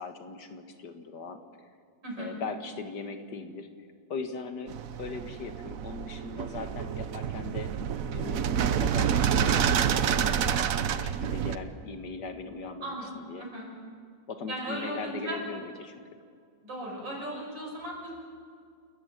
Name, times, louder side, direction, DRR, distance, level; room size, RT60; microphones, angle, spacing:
voice 1, 0.0-1.4 2.2-3.7 4.1-7.7 8.1-10.4 10.8-13.5 14.3-16.0, left 4 dB, 65° left, 7 dB, 2.1 m, -39 dB
sound 1, 4.7-11.6, right 8 dB, 55° right, 1.1 m, -28 dB
voice 2, 14.5-15.4 16.6-18.3, right 1 dB, 80° right, -1 dB, 6.7 m, -37 dB
28.0 x 14.5 x 8.9 m, 2.2 s
omnidirectional pair, 2.0 m